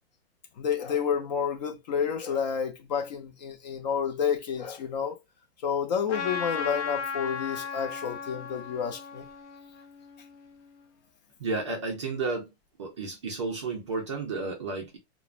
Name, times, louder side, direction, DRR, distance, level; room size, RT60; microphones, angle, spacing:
voice 1, 0.6-5.2 5.6-9.2, left 7 dB, 40° left, 0.4 m, -30 dB
Trumpet, 6.1-10.8, left 6 dB, 75° left, 0.9 m, -36 dB
voice 2, 11.4-12.5 12.8-15.0, right 3 dB, 30° right, 0.3 m, -32 dB
3.0 x 2.0 x 2.4 m
supercardioid pair, 175°, 35 cm